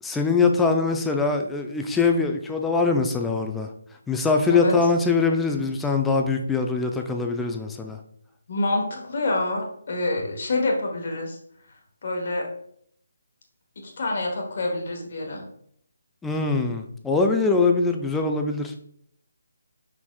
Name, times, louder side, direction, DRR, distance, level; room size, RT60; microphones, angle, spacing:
voice 1, 0.0-3.7 4.1-8.0 16.2-18.7, left 4 dB, 5° left, 3 dB, 0.4 m, -23 dB
voice 2, 8.5-11.4 12.0-12.5 14.0-15.4, left 2 dB, 45° left, 1 dB, 1.1 m, -27 dB
5.5 x 4.2 x 2.3 m, 0.67 s
figure-of-eight pair, 145°, 0 cm